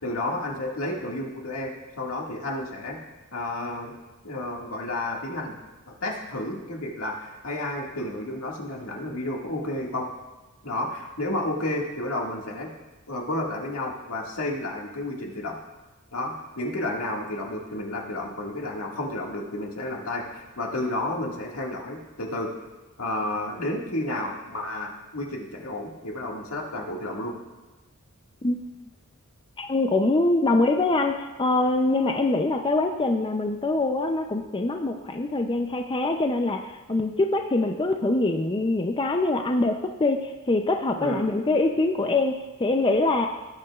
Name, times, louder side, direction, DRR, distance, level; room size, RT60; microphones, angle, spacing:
voice 1, 0.0-3.0 3.3-3.9 4.2-5.6 5.9-10.1 10.6-12.7 13.1-15.6 16.1-22.5 23.0-27.3 41.0-41.2, left 1 dB, 75° left, -1 dB, 1.9 m, -31 dB
voice 2, 29.6-43.3, left 2 dB, 20° left, 4 dB, 0.5 m, -24 dB
18.5 x 9.1 x 2.4 m, 1.1 s
head